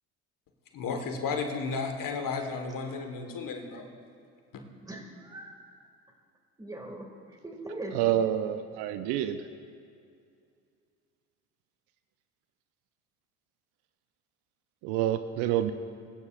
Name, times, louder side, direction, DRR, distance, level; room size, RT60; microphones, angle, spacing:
voice 1, 0.7-3.9, left 4 dB, 50° left, 4 dB, 1.6 m, -33 dB
voice 2, 4.8-5.6 6.6-8.0, right 2 dB, 10° right, 1 dB, 2.2 m, -41 dB
voice 3, 7.9-9.4 14.8-15.7, right 11 dB, 60° right, 11 dB, 0.6 m, -27 dB
22.0 x 9.6 x 2.5 m, 2.4 s
hypercardioid pair, 65°, 43 cm